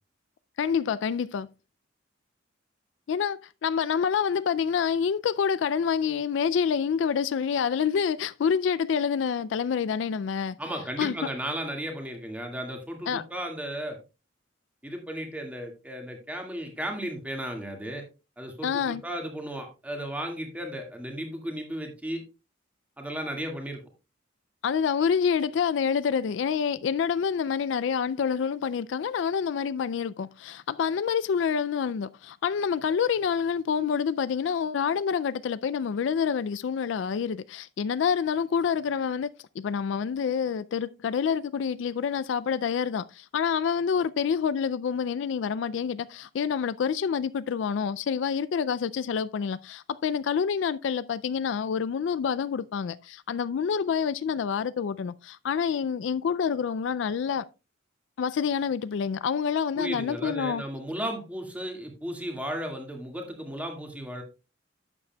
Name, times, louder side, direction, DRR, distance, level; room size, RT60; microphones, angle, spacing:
voice 1, 0.6-1.5 3.1-10.6 11.0-11.1 13.1-13.2 18.6-19.0 24.6-57.4 58.2-60.6, left 7 dB, 65° left, 0.3 m, -27 dB
voice 2, 10.6-14.0 14.8-18.0 18.4-22.2 23.0-23.8 59.7-64.2, equal, 5° right, 1.8 m, -35 dB
11.5 x 8.4 x 2.2 m
head